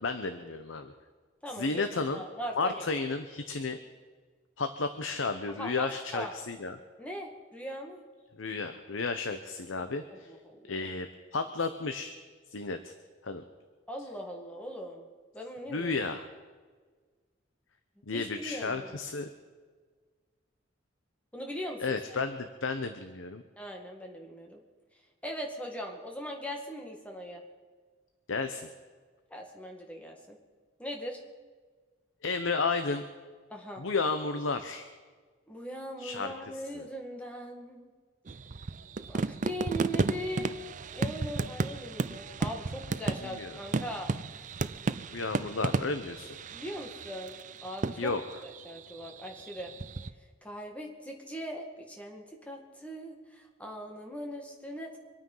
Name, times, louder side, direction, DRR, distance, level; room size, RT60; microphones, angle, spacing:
voice 1, 0.0-0.9 1.6-2.2 2.6-3.8 4.6-6.8 8.4-10.3 10.7-12.1 12.5-12.9 13.2-13.4 15.7-16.3 18.1-19.3 21.8-23.4 28.3-28.6 32.2-33.0 33.8-34.9 36.0-36.3 36.7-36.9 43.2-43.5 45.1-46.4 48.0-48.2, left 4 dB, 80° left, 8 dB, 0.9 m, -32 dB
voice 2, 1.4-3.0 5.6-6.3 7.0-8.0 10.1-10.7 13.9-15.1 15.3-16.0 18.1-19.0 21.3-22.2 23.6-24.6 25.2-27.4 29.3-30.4 30.8-31.2 33.5-33.8 35.5-37.9 39.1-40.5 40.9-44.1 46.5-48.2 48.4-49.7 50.4-55.0, equal, 5° left, 1 dB, 2.1 m, -40 dB
sound 1, 38.3-50.1, right 3 dB, 40° right, 0.5 m, -34 dB
25.0 x 9.2 x 5.6 m, 1.5 s
head